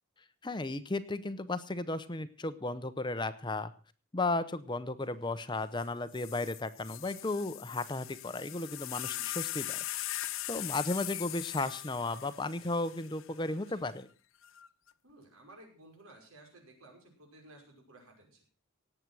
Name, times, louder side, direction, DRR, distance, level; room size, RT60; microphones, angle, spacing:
voice 1, 0.4-3.7 4.1-9.8 10.5-14.1, left 2 dB, 20° left, 13 dB, 0.7 m, -34 dB
sound 1, 5.8-5.9 6.1-13.5 14.4-14.9, left 15 dB, 65° left, 0.7 m, -40 dB
voice 2, 9.1-9.4 13.7-13.9 15.0-18.5, right 1 dB, 80° right, 2 dB, 5.7 m, -56 dB
18.0 x 8.0 x 6.1 m, 0.38 s
head